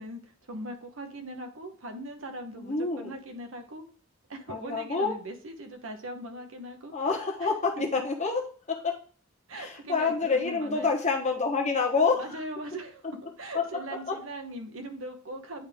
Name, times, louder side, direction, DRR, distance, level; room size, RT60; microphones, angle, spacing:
voice 1, 0.0-3.8 4.3-6.9 7.4-7.8 9.5-10.9 12.1-13.1 13.4-15.7, right 1 dB, 70° right, 5 dB, 1.1 m, -40 dB
voice 2, 2.6-3.1 4.5-5.1 6.9-8.4 8.7-8.9 9.5-12.2 13.5-13.6, left 4 dB, 35° left, 1 dB, 1.2 m, -27 dB
9.1 x 3.6 x 3.6 m, 0.41 s
head